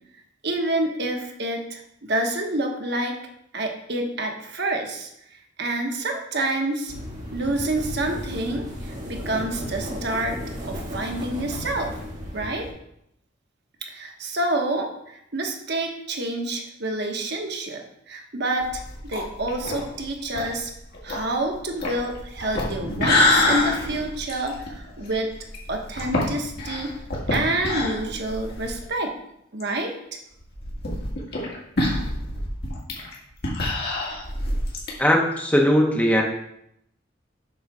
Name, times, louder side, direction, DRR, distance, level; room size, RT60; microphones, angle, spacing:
voice 1, 0.4-3.2 3.5-5.1 5.6-6.9 7.3-10.4 10.7-11.9 12.3-12.7 13.8-20.7 21.0-25.3 25.7-26.9 27.3-29.1 29.5-29.9, right 2 dB, 55° right, 3 dB, 1.1 m, -28 dB
sound 1, 6.9-12.7, equal, 40° right, 2.4 m, -34 dB
sound 2, 18.6-28.8 29.2-29.3 29.6-29.7 30.4-34.9, left 1 dB, 50° left, 2.0 m, -26 dB
voice 2, 35.0-36.2, equal, 10° left, 1 dB, 0.9 m, -19 dB
8.2 x 3.9 x 6.0 m, 0.77 s
head